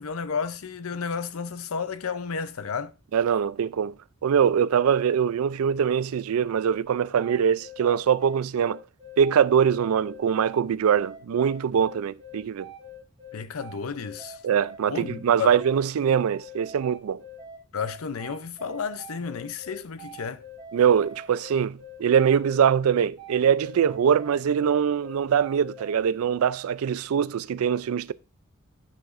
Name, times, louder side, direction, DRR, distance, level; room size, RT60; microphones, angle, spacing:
voice 1, 0.0-2.9 13.3-14.4 14.9-15.6 17.7-20.4, left 6 dB, 90° left, 0.6 m, -32 dB
voice 2, 3.1-3.9 4.2-8.8 9.2-12.7 14.4-17.2 20.7-28.1, right 7 dB, 85° right, 0.4 m, -23 dB
sound 1, 7.2-26.0, equal, 20° right, 2.0 m, -44 dB
9.7 x 5.9 x 2.5 m
head